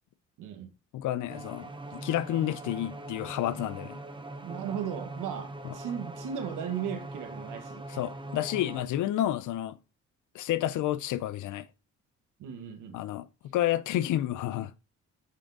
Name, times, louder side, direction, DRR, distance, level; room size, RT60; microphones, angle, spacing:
voice 1, 0.4-0.7 4.4-7.8 12.4-13.0, right 8 dB, 85° right, 1.4 m, -36 dB
voice 2, 0.9-4.0 5.6-5.7 7.9-9.8 10.3-11.6 12.9-14.7, left 13 dB, 80° left, 0.6 m, -30 dB
sound 1, 1.3-8.9, right 2 dB, 15° right, 1.1 m, -41 dB
8.2 x 3.7 x 3.9 m
cardioid pair, 90°, 30 cm